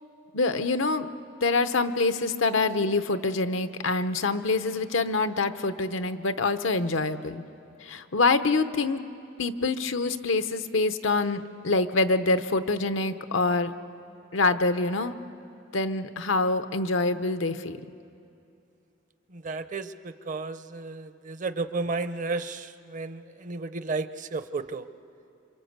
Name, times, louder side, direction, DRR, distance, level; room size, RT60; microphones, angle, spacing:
voice 1, 0.3-1.1 1.4-7.4 7.8-9.0 9.4-13.7 14.3-15.1 15.7-17.8, left 3 dB, 80° left, 10 dB, 0.9 m, -25 dB
voice 2, 19.3-24.9, right 3 dB, 40° right, 12 dB, 0.7 m, -33 dB
28.0 x 25.5 x 8.1 m, 2.6 s
head